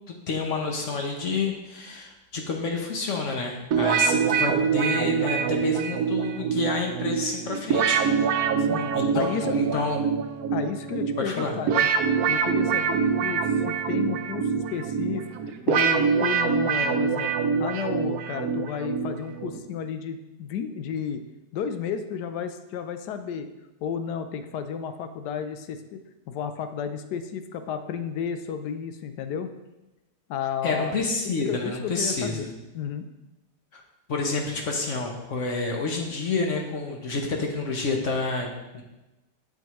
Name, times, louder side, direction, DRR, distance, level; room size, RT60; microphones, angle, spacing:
voice 1, 0.1-8.1 8.9-10.0 11.2-11.6 30.6-32.5 33.7-33.8 34.1-38.8, left 3 dB, 55° left, 2 dB, 1.0 m, -29 dB
sound 1, 3.7-19.6, right 6 dB, 70° right, 1.0 m, -25 dB
voice 2, 8.6-9.8 10.5-11.9 12.3-17.3 17.6-21.2 21.5-23.5 23.8-26.0 26.3-29.5 30.3-30.9 31.4-33.1, left 7 dB, 75° left, 9 dB, 1.2 m, -32 dB
7.9 x 7.0 x 3.0 m, 1.0 s
omnidirectional pair, 1.8 m